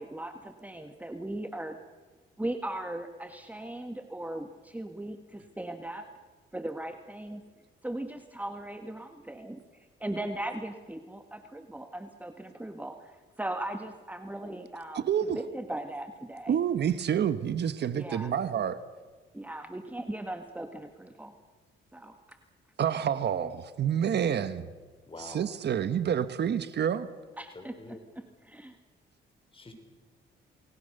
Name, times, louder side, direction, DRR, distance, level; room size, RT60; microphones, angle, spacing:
voice 1, 0.0-1.8 2.4-6.1 6.5-7.4 7.8-16.6 17.9-18.3 19.3-21.4 21.9-22.4 27.4-28.0 28.4-28.8, right 1 dB, 10° right, 6 dB, 1.7 m, -38 dB
voice 2, 14.9-15.4 16.5-18.8 22.8-24.7 25.2-27.1, right 8 dB, 60° right, 12 dB, 1.4 m, -28 dB
voice 3, 25.1-25.4 27.5-28.1 29.5-29.7, left 2 dB, 25° left, 5 dB, 6.1 m, -46 dB
29.0 x 20.5 x 6.8 m, 1.4 s
cardioid pair, 90°, 20 cm